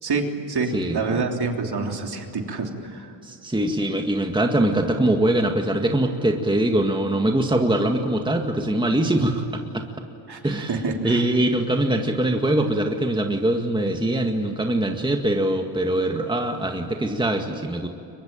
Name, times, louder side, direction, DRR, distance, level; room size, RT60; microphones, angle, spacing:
voice 1, 0.0-3.1 10.3-11.3, right 4 dB, 50° right, 3 dB, 3.4 m, -27 dB
voice 2, 0.7-1.2 3.2-9.8 10.4-10.7 11.0-17.9, right 1 dB, 10° right, 3 dB, 2.0 m, -22 dB
23.5 x 21.5 x 9.1 m, 2.9 s
cardioid pair, 80°, 48 cm